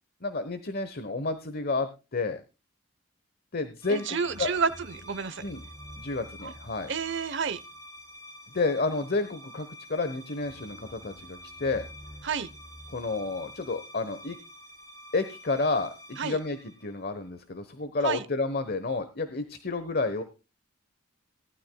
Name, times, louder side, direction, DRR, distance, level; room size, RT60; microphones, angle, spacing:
voice 1, 0.2-2.4 3.5-4.5 5.4-5.6 5.9-6.9 8.5-11.9 12.9-14.4 15.1-20.2, left 3 dB, 45° left, 1.1 m, -30 dB
sound 1, 3.8-17.4, equal, 20° left, 3.1 m, -47 dB
voice 2, 3.9-5.5 6.4-6.5 6.9-7.6 12.2-12.5 16.2-16.4 18.0-18.2, right 6 dB, 60° right, 0.9 m, -30 dB
19.0 x 12.0 x 2.3 m
head